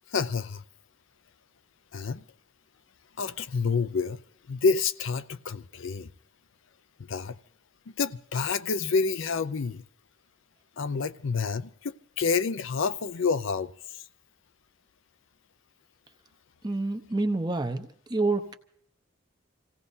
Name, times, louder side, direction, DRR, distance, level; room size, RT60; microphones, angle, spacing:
voice 1, 0.1-0.6 1.9-2.2 3.2-4.2 4.5-6.1 7.1-7.4 8.0-9.8 10.8-14.1, left 4 dB, 60° left, 0.5 m, -28 dB
voice 2, 16.6-18.5, right 2 dB, 20° right, 0.9 m, -28 dB
27.5 x 17.0 x 2.7 m
head